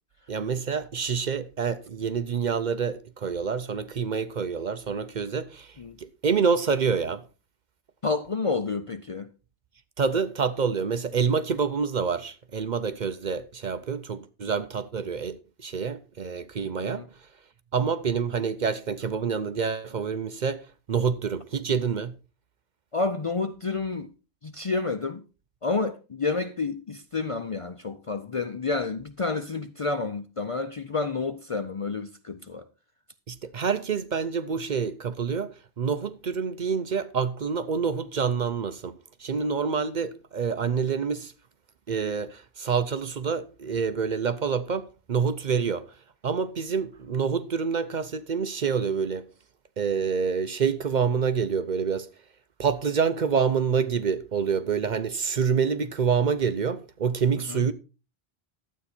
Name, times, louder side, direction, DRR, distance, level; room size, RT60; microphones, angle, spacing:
voice 1, 0.3-7.2 10.0-17.3 17.7-22.2 33.3-41.3 41.9-46.0 46.2-49.3 49.8-52.1 52.6-57.7, right 6 dB, 50° right, 0.7 m, -27 dB
voice 2, 8.0-9.3 16.8-17.1 22.9-24.1 24.4-25.2 25.6-32.7 57.5-57.6, left 3 dB, 45° left, 0.5 m, -29 dB
12.0 x 8.4 x 4.3 m
omnidirectional pair, 1.1 m